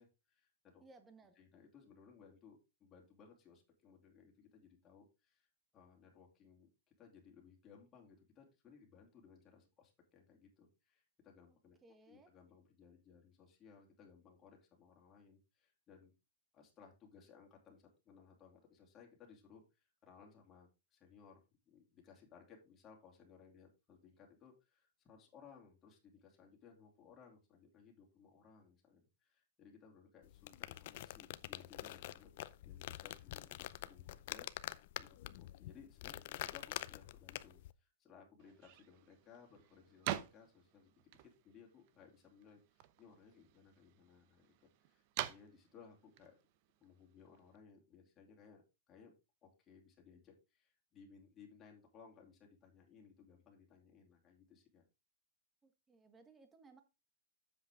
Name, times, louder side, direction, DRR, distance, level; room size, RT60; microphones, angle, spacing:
voice 1, 0.0-0.8 1.4-5.5 5.7-6.7 7.0-11.8 12.1-16.1 16.5-21.4 21.7-40.9 41.2-46.4 46.8-49.1 49.4-54.8, left 6 dB, 20° left, 2.9 m, -62 dB
voice 2, 0.8-1.4 11.5-11.6 11.8-12.3 55.6-56.8, right 3 dB, 10° right, 1.3 m, -62 dB
sound 1, 30.2-37.7, left 15 dB, 50° left, 0.5 m, -47 dB
sound 2, 38.4-47.6, right 13 dB, 40° right, 0.8 m, -48 dB
8.0 x 7.6 x 3.7 m
supercardioid pair, 160°, 0 cm